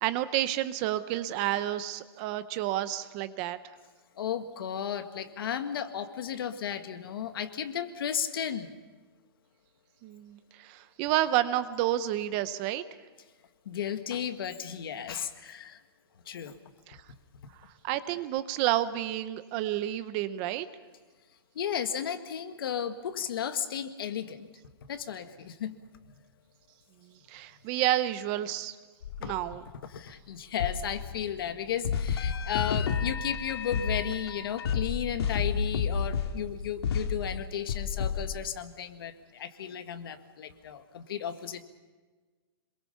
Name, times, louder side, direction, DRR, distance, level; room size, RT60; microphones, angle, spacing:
voice 1, 0.0-3.6 10.0-12.8 16.9-17.0 17.8-20.7 27.0-28.8 29.2-29.6, right 13 dB, 25° right, 13 dB, 0.6 m, -30 dB
voice 2, 4.2-8.8 13.7-15.8 16.3-16.6 21.6-24.5 24.9-25.8 29.2-29.3 29.9-41.6, left 9 dB, 60° left, 8 dB, 1.7 m, -34 dB
sound 1, 29.0-29.7 30.6-31.6 31.8-38.4, left 6 dB, 80° left, 2.0 m, -31 dB
26.5 x 22.5 x 5.6 m, 1.3 s
hypercardioid pair, 170°, 13 cm